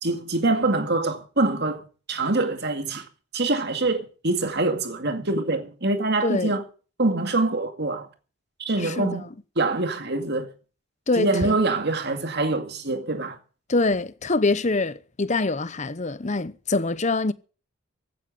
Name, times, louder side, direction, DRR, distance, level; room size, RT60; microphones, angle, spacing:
voice 1, 0.0-3.1 3.3-6.6 7.0-8.1 8.6-9.3 9.6-10.5 11.2-13.4, right 2 dB, 50° right, 2.2 m, -25 dB
voice 2, 6.2-6.5 8.8-9.2 11.1-11.3 13.7-17.3, left 3 dB, 30° left, 0.7 m, -24 dB
15.5 x 9.5 x 7.7 m
head